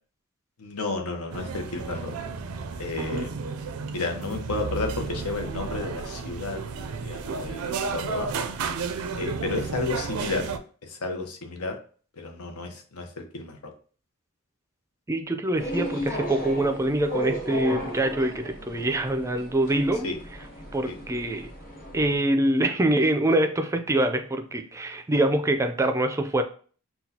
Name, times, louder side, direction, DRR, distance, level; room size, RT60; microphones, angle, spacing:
voice 1, 0.6-2.1 2.8-3.3 3.9-6.6 7.0-8.3 9.2-10.5 10.8-11.8 12.1-13.7 20.0-20.2 20.9-21.0, left 3 dB, 85° left, 4 dB, 0.8 m, -32 dB
sound 1, 1.3-10.6, right 5 dB, 75° right, 0.4 m, -32 dB
voice 2, 15.1-20.1 20.7-21.5 21.9-26.4, right 1 dB, 15° right, 7 dB, 0.4 m, -24 dB
sound 2, 15.6-22.1, equal, 40° left, 1.0 m, -35 dB
5.9 x 2.3 x 2.8 m, 0.42 s
head